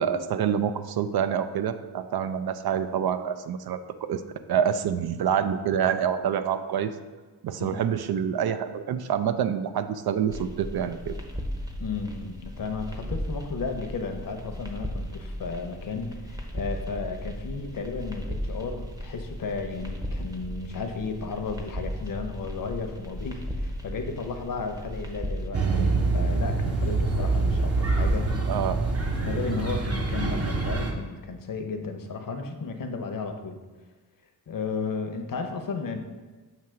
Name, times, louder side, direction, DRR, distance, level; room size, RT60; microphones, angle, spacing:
voice 1, 0.0-4.2 4.5-6.9 7.4-11.2 28.5-28.8, right 8 dB, 65° right, 10 dB, 0.5 m, -27 dB
sound 1, 10.3-25.5, equal, 10° right, 0.7 m, -36 dB
voice 2, 11.8-28.3 29.2-33.6 34.5-36.0, left 4 dB, 55° left, 5 dB, 0.8 m, -34 dB
sound 2, 25.5-30.9, right 3 dB, 35° right, 0.9 m, -25 dB
7.6 x 2.8 x 5.7 m, 1.3 s
wide cardioid pair, 115°, 41 cm